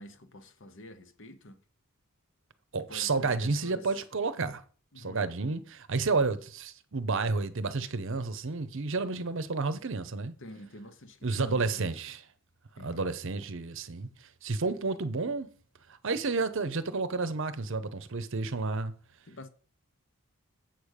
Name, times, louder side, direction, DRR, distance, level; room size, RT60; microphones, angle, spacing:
voice 1, 0.0-1.6 2.9-3.9 4.9-5.3 10.4-11.9 12.8-13.2 19.3-19.5, left 1 dB, 55° left, 1.0 m, -48 dB
voice 2, 2.7-4.6 5.0-10.3 11.2-12.2 12.8-14.1 14.4-15.5 16.0-18.9, right 3 dB, 60° right, 0.7 m, -31 dB
7.8 x 5.1 x 6.5 m
head